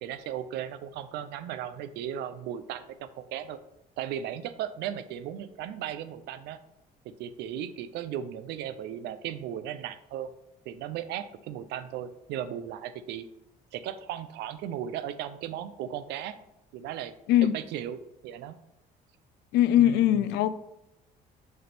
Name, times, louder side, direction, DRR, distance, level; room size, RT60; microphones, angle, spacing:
voice 1, 0.0-3.6 4.0-6.6 7.0-10.3 10.7-13.3 13.7-16.4 16.7-17.1 17.4-18.6 19.7-20.2, right 10 dB, 80° right, 13 dB, 0.5 m, -36 dB
voice 2, 19.5-20.6, left 12 dB, 80° left, 14 dB, 0.4 m, -21 dB
6.5 x 3.4 x 4.3 m, 0.85 s
cardioid pair, 110°, 17 cm